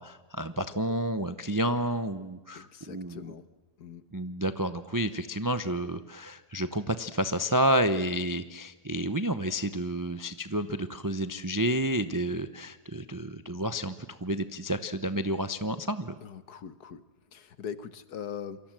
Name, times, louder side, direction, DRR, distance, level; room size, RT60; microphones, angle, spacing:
voice 1, 0.0-3.3 4.1-16.1, right 1 dB, 25° right, 11 dB, 0.4 m, -30 dB
voice 2, 2.5-3.4 3.8-4.0 16.2-17.0 17.3-18.6, left 8 dB, 70° left, 13 dB, 1.7 m, -41 dB
28.0 x 23.5 x 7.6 m, 1.1 s
omnidirectional pair, 1.8 m